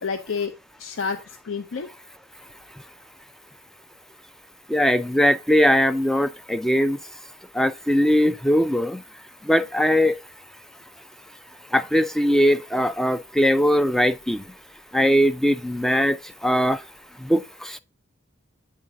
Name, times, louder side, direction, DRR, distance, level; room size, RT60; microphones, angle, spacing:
voice 1, 0.0-1.9, left 5 dB, 85° left, 0.6 m, -30 dB
voice 2, 4.7-7.0 7.5-9.0 9.4-10.2 11.7-14.5 14.9-16.8 17.2-17.8, equal, ahead, 0.3 m, -20 dB
9.0 x 3.7 x 3.7 m
head